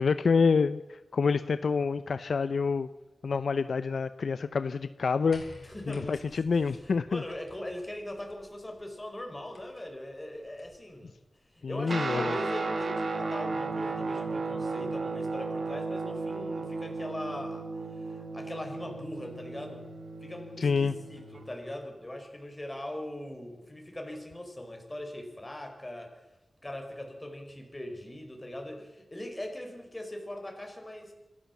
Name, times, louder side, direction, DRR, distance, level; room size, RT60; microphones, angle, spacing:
voice 1, 0.0-2.9 3.2-5.4 5.9-7.2 11.6-12.4 20.6-20.9, left 5 dB, 75° left, 13 dB, 0.6 m, -27 dB
sound 1, 5.3-10.9 12.0-12.1, left 2 dB, 50° left, 4.7 m, -55 dB
voice 2, 5.6-11.1 11.5-19.9 20.2-26.3 26.6-31.1, left 1 dB, 20° left, 3 dB, 5.1 m, -40 dB
Guitar, 11.9-21.5, right 3 dB, 60° right, 2.4 m, -34 dB
26.0 x 14.0 x 7.3 m, 1.0 s
wide cardioid pair, 85°, 0 cm